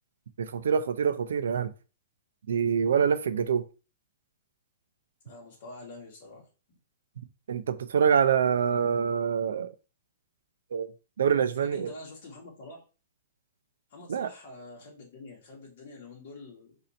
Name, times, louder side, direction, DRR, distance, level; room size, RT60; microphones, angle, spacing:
voice 1, 0.4-1.7 2.5-3.7 7.5-9.7 10.7-10.9 11.2-11.9 14.1-14.3, right 7 dB, 85° right, 0.5 m, -25 dB
voice 2, 5.2-6.5 11.6-12.8 13.9-16.8, left 2 dB, 45° left, 1.9 m, -46 dB
4.1 x 2.7 x 4.2 m
hypercardioid pair, 175°, 0 cm